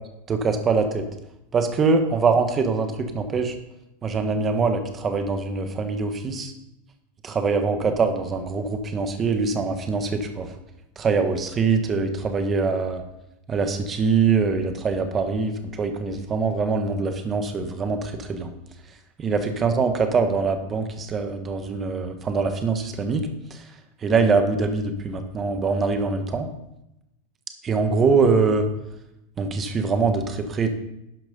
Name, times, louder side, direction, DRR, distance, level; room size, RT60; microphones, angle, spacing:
voice 1, 0.3-1.0 1.5-3.5 4.0-6.5 7.2-10.5 11.0-13.0 13.5-18.5 19.2-23.6 24.0-26.5 27.6-28.7 29.4-30.7, right 4 dB, 20° right, 7 dB, 1.3 m, -23 dB
11.5 x 6.0 x 5.3 m, 0.88 s
supercardioid pair, 145°, 0 cm